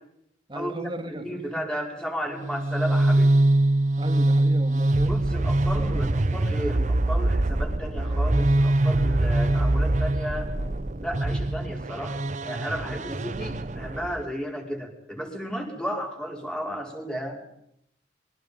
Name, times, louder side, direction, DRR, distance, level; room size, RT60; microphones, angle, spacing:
voice 1, 0.5-1.7 4.0-5.3 5.6-6.1 6.7-6.9 12.9-13.3, right 1 dB, 25° right, 1.9 m, -37 dB
voice 2, 1.1-3.3 5.1-10.5 11.0-17.4, equal, 5° left, 5.1 m, -33 dB
sound 1, 2.4-14.2, right 1 dB, 40° right, 0.9 m, -23 dB
26.0 x 23.5 x 5.4 m
head